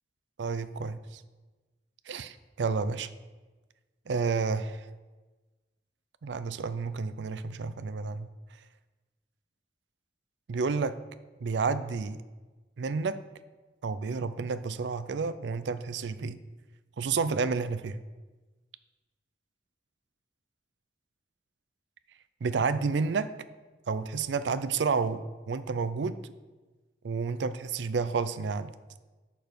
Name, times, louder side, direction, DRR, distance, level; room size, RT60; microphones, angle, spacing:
voice 1, 0.4-1.2 2.1-3.1 4.1-4.9 6.2-8.3 10.5-11.0 11.4-12.2 12.8-13.2 13.8-16.4 17.0-18.0 22.4-23.3 23.9-26.3 27.0-28.7, right 4 dB, 80° right, 13 dB, 0.4 m, -30 dB
6.8 x 6.1 x 5.1 m, 1.2 s
head